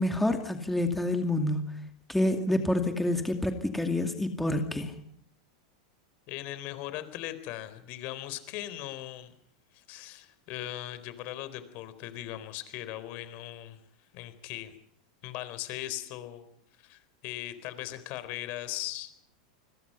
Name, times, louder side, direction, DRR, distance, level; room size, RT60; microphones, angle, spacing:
voice 1, 0.0-1.7 2.1-4.9, left 1 dB, 5° left, 5 dB, 2.4 m, -28 dB
voice 2, 6.3-9.4 9.7-13.8 14.1-14.7 15.2-16.4 16.8-19.1, left 14 dB, 45° left, 12 dB, 4.0 m, -39 dB
29.0 x 21.0 x 5.7 m, 0.68 s
supercardioid pair, 140°, 4 cm